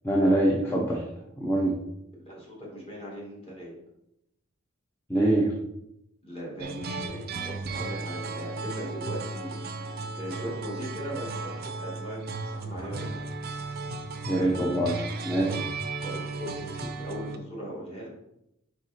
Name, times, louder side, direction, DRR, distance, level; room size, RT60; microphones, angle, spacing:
voice 1, 0.0-1.0 1.4-1.8 5.1-5.5 14.3-15.5, right 1 dB, 10° left, -3 dB, 0.7 m, -24 dB
voice 2, 2.2-3.7 6.2-13.2 15.4-15.6 16.0-18.1, equal, 25° left, -4 dB, 2.0 m, -39 dB
sound 1, 6.6-17.4, right 3 dB, 45° right, 0.5 m, -35 dB
4.9 x 4.5 x 4.3 m, 0.81 s
head